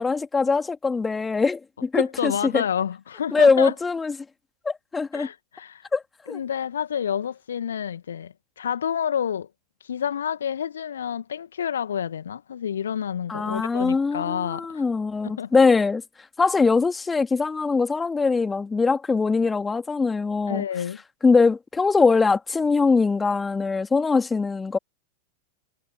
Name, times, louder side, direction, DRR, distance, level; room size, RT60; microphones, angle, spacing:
voice 1, 0.0-2.6 3.3-4.1 4.6-5.3 5.9-6.0 6.3-6.4 13.3-16.0 16.4-20.6 21.2-24.8, left 4 dB, 15° left, 2.8 m, -22 dB
voice 2, 1.9-3.7 5.1-5.8 6.3-9.5 9.8-14.8 15.2-15.5 20.5-21.0, left 8 dB, 65° left, 2.2 m, -29 dB
figure-of-eight pair, 90°, 0 cm